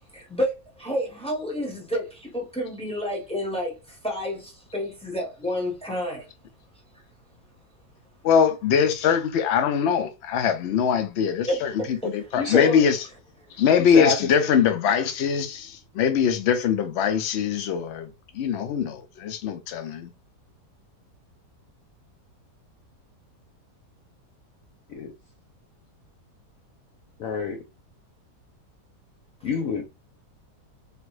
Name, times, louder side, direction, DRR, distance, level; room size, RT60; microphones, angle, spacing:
voice 1, 0.1-6.3 11.5-12.3 12.6-12.8 13.5-13.6 29.4-29.5, equal, 5° left, 0.8 m, -30 dB
voice 2, 8.2-13.0 13.6-18.1 18.3-20.1, left 7 dB, 80° left, 0.6 m, -22 dB
voice 3, 12.4-12.7 13.8-14.2 24.9-25.1 27.2-27.6 29.4-29.9, left 5 dB, 65° left, 1.0 m, -25 dB
3.2 x 2.5 x 3.1 m
omnidirectional pair, 1.8 m